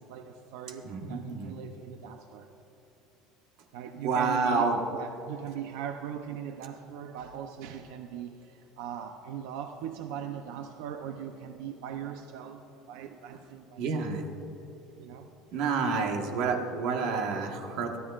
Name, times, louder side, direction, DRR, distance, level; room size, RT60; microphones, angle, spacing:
voice 1, 0.0-2.5 3.7-14.3 15.0-15.3, right 9 dB, 85° right, 5 dB, 0.7 m, -40 dB
voice 2, 0.9-1.5 4.0-4.8 13.8-14.2 15.5-18.0, right 4 dB, 55° right, 3 dB, 1.4 m, -29 dB
23.5 x 15.0 x 2.5 m, 2.9 s
cardioid pair, 175°, 0 cm